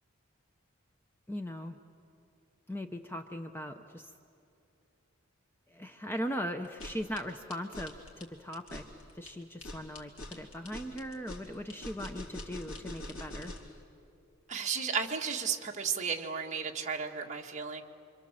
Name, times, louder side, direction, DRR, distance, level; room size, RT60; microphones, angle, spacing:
voice 1, 1.3-1.8 2.7-4.1 5.7-8.9 9.1-13.5, equal, 10° left, 6 dB, 0.7 m, -39 dB
sound 1, 6.6-13.8, left 1 dB, 85° left, 3.5 m, -44 dB
voice 2, 14.5-17.8, right 6 dB, 35° right, 1 dB, 1.8 m, -34 dB
28.0 x 25.5 x 7.6 m, 2.7 s
head